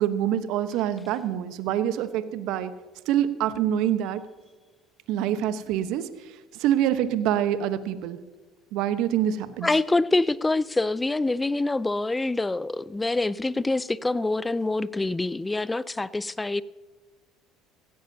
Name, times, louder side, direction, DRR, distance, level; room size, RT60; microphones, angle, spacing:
voice 1, 0.0-2.7 3.1-4.2 5.1-8.2 8.7-9.7, right 10 dB, 65° right, 1.0 m, -26 dB
voice 2, 9.6-16.6, left 2 dB, 15° left, 0.5 m, -25 dB
17.0 x 16.0 x 2.8 m
hypercardioid pair, 70°, 0 cm